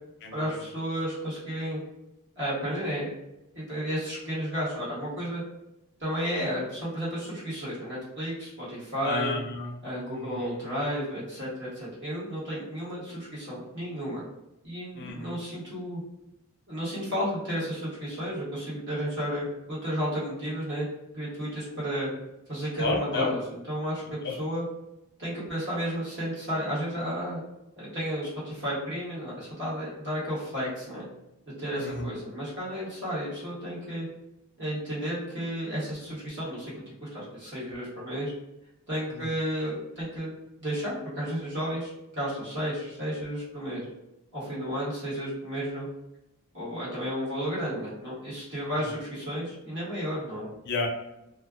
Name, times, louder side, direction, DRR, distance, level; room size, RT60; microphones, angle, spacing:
voice 1, 0.3-1.8 2.3-3.1 3.5-5.4 6.0-9.3 9.8-14.2 14.6-16.0 16.7-20.9 21.1-22.1 22.5-23.4 23.7-24.0 24.3-24.6 25.2-27.4 27.8-31.1 31.6-34.1 34.6-36.7 37.0-38.3 38.9-40.3 40.6-43.9 44.3-45.9 46.5-50.5, equal, 50° right, -9 dB, 1.4 m, -32 dB
voice 2, 9.0-9.7 10.1-10.6 14.9-15.4 22.8-23.3 24.2-24.3 31.7-32.1 39.1-39.3 48.8-48.9 50.7-50.9, left 3 dB, 50° left, 1 dB, 0.5 m, -32 dB
2.5 x 2.4 x 2.4 m, 0.92 s
head